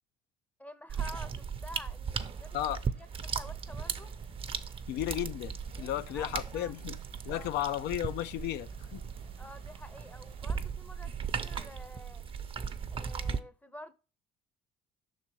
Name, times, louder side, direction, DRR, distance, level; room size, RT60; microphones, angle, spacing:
voice 1, 0.6-2.6 3.0-4.1 5.7-6.7 7.3-7.5 9.4-12.2 12.9-13.9, left 1 dB, 10° left, 0.6 m, -49 dB
sound 1, 0.9-13.4, right 6 dB, 30° right, 0.6 m, -38 dB
sound 2, 2.3-10.5, right 6 dB, 55° right, 1.0 m, -51 dB
voice 2, 4.9-7.0 7.2-9.0, left 12 dB, 80° left, 0.4 m, -34 dB
6.0 x 4.1 x 4.5 m
cardioid pair, 110°, 17 cm